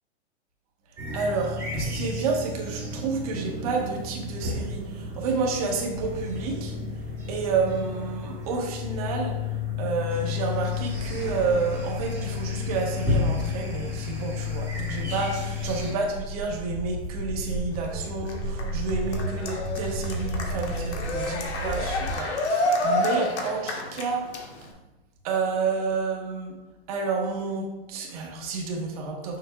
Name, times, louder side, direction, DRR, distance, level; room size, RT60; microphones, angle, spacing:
sound 1, 1.0-15.9, left 4 dB, 10° right, 1.3 m, -31 dB
voice 1, 1.1-6.7 7.3-9.4 9.8-24.3 25.2-26.6 26.9-29.4, right 4 dB, 35° right, 1 dB, 1.1 m, -30 dB
Walk footsteps, 14.4-22.1, right 1 dB, 10° left, 1.6 m, -33 dB
Cheering, 17.7-24.7, left 1 dB, 80° left, 1.4 m, -29 dB
6.7 x 6.3 x 2.3 m, 1.0 s
hypercardioid pair, 170°, 33 cm